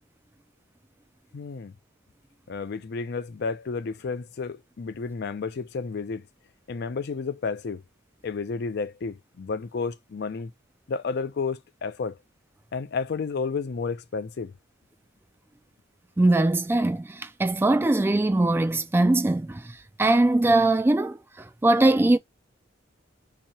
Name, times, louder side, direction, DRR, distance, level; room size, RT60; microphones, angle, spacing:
voice 1, 1.3-1.7 2.5-6.2 6.7-7.8 8.2-10.5 10.9-12.2 12.7-14.5, left 4 dB, 60° left, 0.4 m, -31 dB
voice 2, 16.2-19.6 20.0-21.2 21.6-22.2, right 2 dB, 10° right, 0.3 m, -21 dB
2.9 x 2.8 x 4.1 m
head